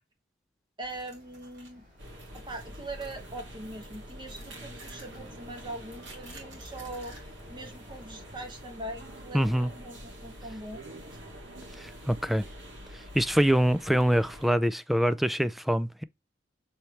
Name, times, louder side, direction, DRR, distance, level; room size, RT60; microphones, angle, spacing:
voice 1, 0.8-1.8 2.3-7.2 7.5-10.8 11.1-11.2, right 1 dB, 25° right, 1.2 m, -41 dB
sound 1, 0.8-7.7, right 2 dB, 65° right, 3.1 m, -54 dB
sound 2, 0.9-8.4, left 1 dB, 45° right, 4.8 m, -55 dB
sound 3, 2.0-14.5, equal, 85° right, 2.4 m, -46 dB
voice 2, 9.3-9.7 11.8-12.4 13.1-16.0, equal, ahead, 0.3 m, -25 dB
6.9 x 4.4 x 3.2 m
head